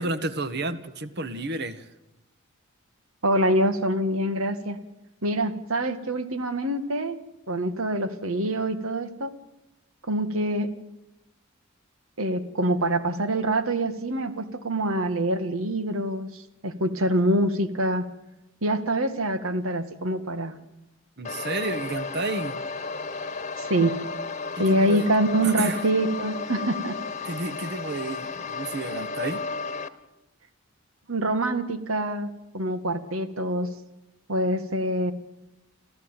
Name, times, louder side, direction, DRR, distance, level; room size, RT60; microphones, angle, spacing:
voice 1, 0.0-1.8 21.2-22.5 24.6-25.0 25.4-25.8 27.2-29.4, right 2 dB, 55° right, 13 dB, 1.5 m, -31 dB
voice 2, 3.2-4.8 5.2-7.2 7.5-9.3 10.1-10.7 12.2-18.0 18.6-20.6 23.6-23.9 24.6-26.9 31.1-33.7 34.3-35.1, right 1 dB, 90° right, 11 dB, 2.0 m, -25 dB
sound 1, 21.2-29.9, left 4 dB, 35° left, 1.3 m, -33 dB
27.5 x 14.5 x 9.1 m, 0.93 s
head